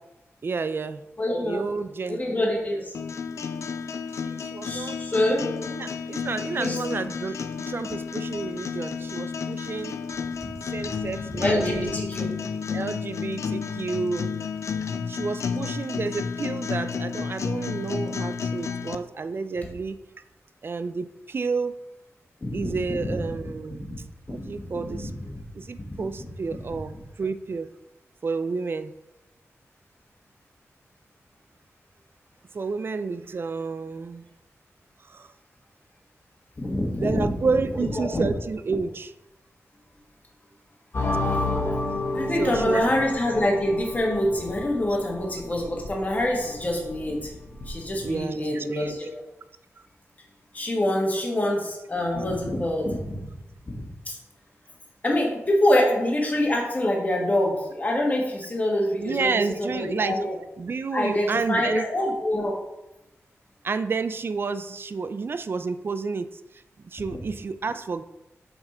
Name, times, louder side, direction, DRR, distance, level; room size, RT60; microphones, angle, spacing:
voice 1, 0.4-1.0 1.4-2.2 4.1-5.0 5.7-10.0 10.7-12.0 12.7-14.3 15.1-20.0 20.6-21.7 22.5-25.1 25.5-27.7 28.2-28.9 32.5-34.3 35.0-35.3 37.0-39.1 42.4-42.9 48.0-49.1 59.0-60.2 60.6-61.9 63.6-68.0, right 4 dB, 45° right, 12 dB, 0.4 m, -30 dB
voice 2, 1.2-1.6 2.1-2.9 4.6-5.5 6.6-6.8 10.4-10.5 11.3-12.3 22.4-23.2 23.9-24.0 24.3-25.4 25.8-26.0 36.6-37.3 37.9-38.2 42.1-47.3 47.7-49.1 50.5-53.2 53.7-54.2 55.0-59.4 59.7-60.3 60.9-62.6, left 1 dB, 30° left, -1 dB, 1.6 m, -25 dB
sound 1, 2.9-19.0, left 5 dB, 70° left, 0.4 m, -31 dB
sound 2, 40.9-48.1, left 2 dB, 55° left, 1.1 m, -31 dB
6.1 x 4.9 x 4.3 m, 0.92 s
wide cardioid pair, 130°, 5 cm